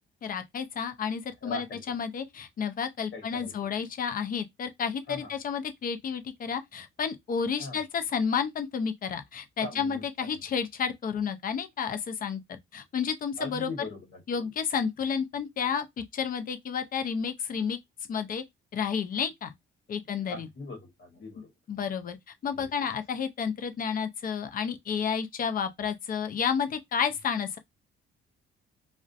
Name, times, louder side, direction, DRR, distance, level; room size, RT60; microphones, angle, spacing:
voice 1, 0.2-13.7 14.3-17.8 18.1-18.4 18.7-19.5 19.9-20.5 21.7-22.2 22.4-27.6, left 6 dB, 45° left, 0.5 m, -31 dB
voice 2, 1.4-1.8 3.1-3.5 5.1-5.3 7.6-7.8 9.6-10.4 13.4-14.4 20.2-21.5 22.5-22.7, left 2 dB, 65° left, 1.0 m, -40 dB
2.4 x 2.1 x 2.4 m
cardioid pair, 90°, 20 cm